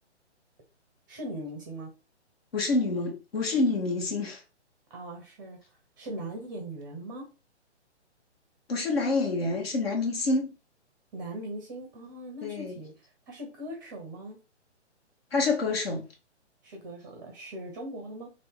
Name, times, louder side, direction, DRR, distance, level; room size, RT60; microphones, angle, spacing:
voice 1, 1.1-1.9 4.9-5.6 6.0-7.2 11.1-12.9 13.3-14.4 16.6-18.3, right 1 dB, 20° right, 0.6 m, -40 dB
voice 2, 2.5-4.4 8.7-10.5 12.4-12.7 15.3-16.0, left 3 dB, 55° left, 1.3 m, -27 dB
2.7 x 2.6 x 3.6 m
figure-of-eight pair, 135°, 35 cm